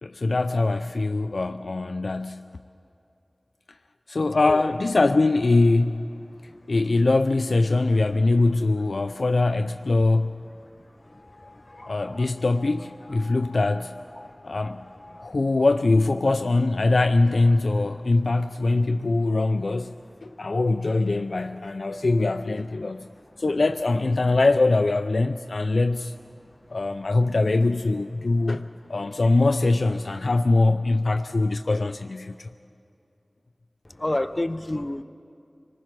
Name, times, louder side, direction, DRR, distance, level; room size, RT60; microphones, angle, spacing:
voice 1, 0.0-2.4 4.1-6.1 6.7-10.4 11.9-13.9 14.4-14.8 15.2-19.9 20.2-23.1 23.4-26.1 26.7-32.5, left 2 dB, 85° left, 0.4 m, -22 dB
voice 2, 4.4-4.7 11.1-12.3 15.1-15.3 34.0-35.0, left 1 dB, 35° left, 0.7 m, -30 dB
sound 1, 11.0-15.3, left 2 dB, 50° left, 2.5 m, -49 dB
26.0 x 19.5 x 6.1 m
wide cardioid pair, 50°, 0 cm